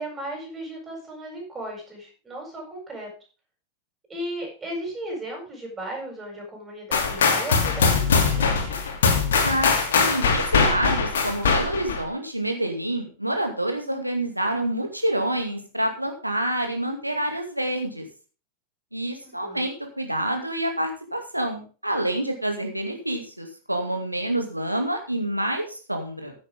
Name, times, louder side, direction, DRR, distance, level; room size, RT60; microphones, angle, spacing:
voice 1, 0.0-3.1 4.1-8.9 19.2-19.6, right 1 dB, 15° right, -1 dB, 7.6 m, -36 dB
sound 1, 6.9-12.0, left 5 dB, 60° left, 2.7 m, -21 dB
voice 2, 9.4-18.0 18.9-26.3, right 1 dB, 85° right, 4 dB, 2.4 m, -27 dB
15.0 x 8.4 x 3.7 m, 0.36 s
figure-of-eight pair, 90°, 0 cm